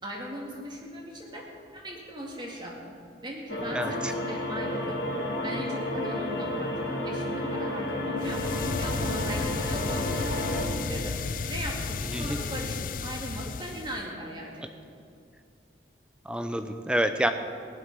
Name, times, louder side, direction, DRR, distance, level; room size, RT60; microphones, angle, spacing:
voice 1, 0.0-1.4 1.7-2.9 3.2-5.0 5.4-8.4 8.8-11.2 11.5-14.7, right 1 dB, 25° right, -1 dB, 2.3 m, -39 dB
sound 1, 3.5-10.6, left 1 dB, 70° left, 3.8 m, -31 dB
voice 2, 3.7-4.1 12.1-12.4 16.2-17.3, right 1 dB, 5° right, 8 dB, 0.7 m, -28 dB
sound 2, 8.2-14.1, left 4 dB, 45° left, 0.4 m, -33 dB
17.0 x 11.5 x 6.2 m, 2.4 s
head